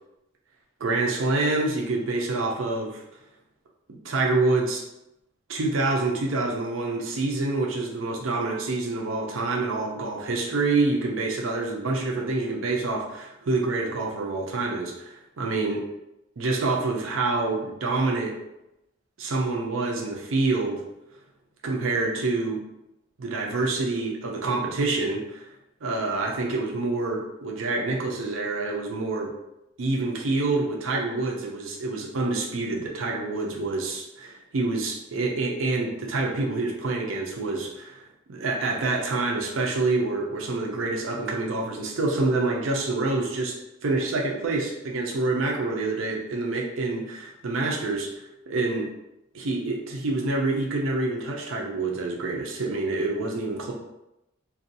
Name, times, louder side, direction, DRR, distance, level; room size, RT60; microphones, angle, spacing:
voice 1, 0.8-3.0 4.0-4.8 5.5-15.9 16.4-18.4 19.2-20.8 21.6-22.6 23.2-25.5 25.8-29.3 29.8-38.0 38.3-43.6 43.8-48.1 48.5-48.9 49.3-53.7, right 3 dB, 75° right, 0 dB, 0.5 m, -27 dB
2.6 x 2.3 x 2.6 m, 0.89 s
head